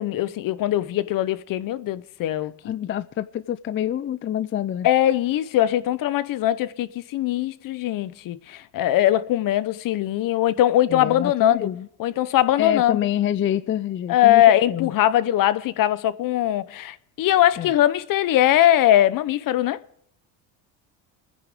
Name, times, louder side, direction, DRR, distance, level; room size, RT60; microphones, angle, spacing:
voice 1, 0.0-2.5 4.8-11.7 12.0-13.0 14.1-19.8, left 12 dB, 55° left, 0.9 m, -21 dB
voice 2, 2.6-4.9 10.9-11.9 12.6-14.9 17.6-17.7, left 11 dB, 30° left, 0.5 m, -27 dB
28.5 x 10.5 x 3.6 m
supercardioid pair, 95°, 38 cm